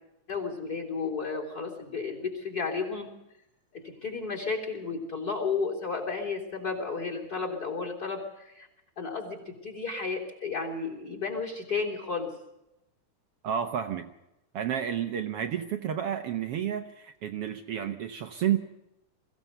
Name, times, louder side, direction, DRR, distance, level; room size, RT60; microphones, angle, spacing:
voice 1, 0.3-3.1 3.7-8.7 9.0-12.3, left 4 dB, 30° left, 6 dB, 3.5 m, -33 dB
voice 2, 13.4-14.1 14.5-18.6, right 9 dB, 65° right, 7 dB, 1.6 m, -31 dB
22.5 x 15.5 x 8.0 m, 0.88 s
omnidirectional pair, 3.6 m